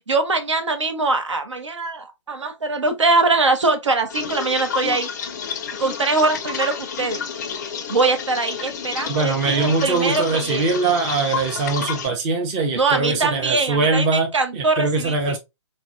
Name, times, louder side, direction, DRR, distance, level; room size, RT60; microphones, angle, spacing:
voice 1, 0.1-5.1 5.8-7.2 7.9-10.7 12.7-15.4, right 3 dB, 70° right, 0.7 m, -22 dB
sound 1, 4.1-12.1, left 6 dB, 35° left, 0.4 m, -30 dB
voice 2, 9.1-15.4, right 4 dB, 20° right, 0.6 m, -22 dB
4.1 x 2.1 x 2.5 m
figure-of-eight pair, 130°, 16 cm